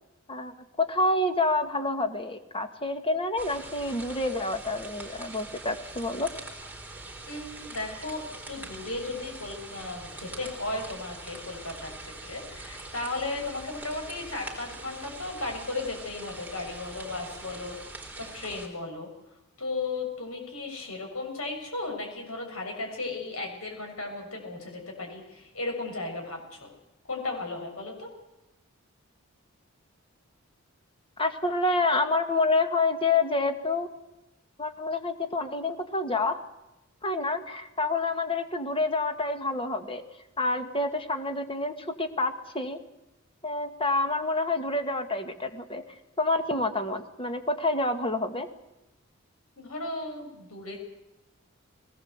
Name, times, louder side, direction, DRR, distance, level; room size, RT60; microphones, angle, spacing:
voice 1, 0.3-6.3 31.2-33.9 34.6-36.4 37.0-40.0 40.4-42.8 43.4-45.8 46.2-48.5, left 2 dB, 25° left, 7 dB, 1.8 m, -28 dB
sound 1, 3.4-18.7, right 2 dB, 5° right, 3.8 m, -43 dB
voice 2, 7.3-17.8 18.3-19.1 19.6-26.7 27.1-28.1 49.6-50.8, left 2 dB, 75° left, 2 dB, 7.2 m, -35 dB
21.0 x 19.0 x 8.1 m, 0.92 s
head